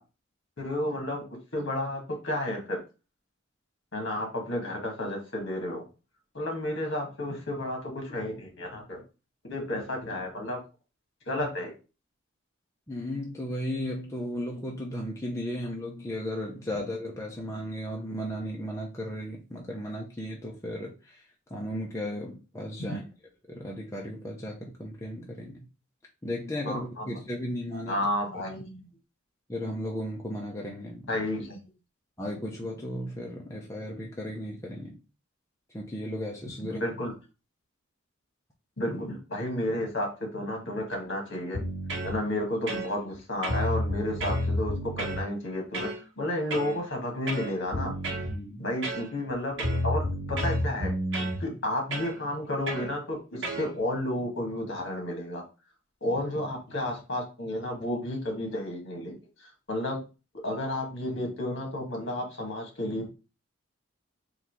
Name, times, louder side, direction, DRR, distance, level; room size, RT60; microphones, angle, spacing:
voice 1, 0.6-1.2 1.5-2.8 3.9-5.8 6.3-9.0 9.4-10.6 11.3-11.7 22.8-22.9 26.6-27.2 27.9-28.9 31.1-31.6 36.7-37.1 38.8-41.6 42.0-47.9 48.6-50.0 50.3-50.9 51.4-55.4 56.0-60.0 60.4-63.1, left 1 dB, 60° left, 1.6 m, -32 dB
voice 2, 12.9-23.0 23.5-25.7 26.2-28.0 29.5-31.1 32.2-35.0 35.7-36.8 42.1-42.2 48.3-48.6, equal, 15° left, 0.6 m, -35 dB
sound 1, 41.5-42.1 42.7-43.2 43.4-45.2 45.7-46.0 46.5-46.8 47.3-48.3 48.8-49.3 49.6-51.4 51.9-52.1 52.7-52.9 53.4-53.7, equal, 65° right, 1.3 m, -30 dB
3.8 x 2.8 x 4.6 m
head